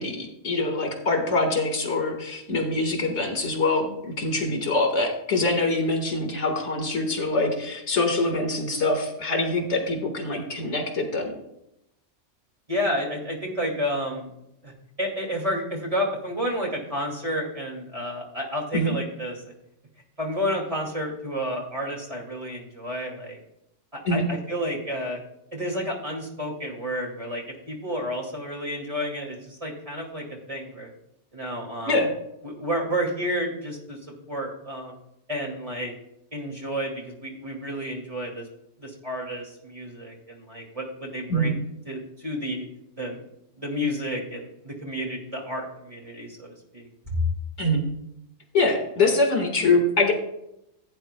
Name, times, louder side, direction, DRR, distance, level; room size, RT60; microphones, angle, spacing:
voice 1, 0.0-11.3 18.7-18.9 24.1-24.3 31.9-32.1 41.3-41.5 47.6-47.8 48.5-50.1, left 2 dB, 70° left, 3 dB, 1.9 m, -24 dB
voice 2, 12.7-14.3 14.6-14.7 15.0-19.5 20.2-23.4 23.9-25.2 25.5-30.9 31.3-32.0 32.4-34.0 34.3-34.9 35.3-35.9 36.3-38.5 38.8-41.6 41.9-42.7 43.0-43.2 43.6-47.2, equal, 30° right, -1 dB, 2.3 m, -31 dB
16.0 x 8.7 x 2.2 m, 0.81 s
omnidirectional pair, 1.2 m